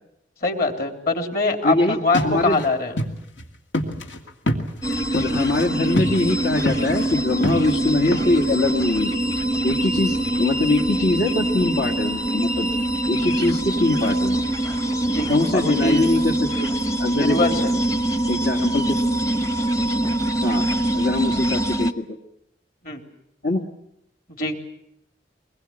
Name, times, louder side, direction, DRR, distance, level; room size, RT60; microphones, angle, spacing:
voice 1, 0.4-3.0 15.1-16.0 17.1-17.7 22.8-23.0 24.4-24.6, left 2 dB, 50° left, 4 dB, 3.4 m, -23 dB
voice 2, 1.6-2.6 5.1-9.1 9.6-12.7 13.1-14.4 15.3-16.7 17.0-17.4 18.3-19.0 20.4-20.7 20.9-22.2 23.4-23.7, left 2 dB, 70° left, -2 dB, 1.9 m, -22 dB
sound 1, 2.1-2.7 3.0-3.1 3.4-3.5 3.7-5.7 6.0-6.3 6.7-7.1 7.4-8.6, left 1 dB, 90° left, 2.5 m, -26 dB
sound 2, 4.8-21.9, right 1 dB, 20° left, 0.9 m, -23 dB
23.5 x 21.0 x 8.8 m, 0.79 s
head